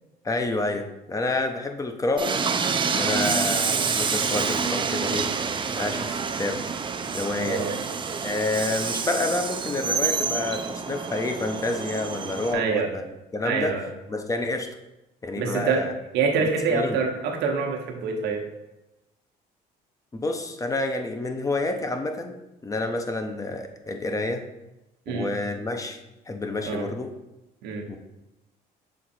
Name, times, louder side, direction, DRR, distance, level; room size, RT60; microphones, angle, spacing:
voice 1, 0.2-2.4 2.9-5.4 5.8-6.6 7.1-7.9 8.2-13.8 14.1-14.7 15.2-15.9 16.4-17.0 20.1-22.3 22.6-24.4 25.1-26.0 26.3-27.1 27.9-28.0, left 2 dB, 20° left, 5 dB, 0.7 m, -29 dB
Train, 2.2-12.5, right 5 dB, 30° right, 0.5 m, -27 dB
voice 2, 7.4-7.8 12.5-12.9 13.4-13.8 15.4-15.9 16.1-18.4 25.1-25.3 26.7-26.8 27.6-27.9, right 5 dB, 85° right, 2 dB, 1.1 m, -25 dB
6.5 x 3.8 x 4.3 m, 0.97 s
cardioid pair, 110°, 17 cm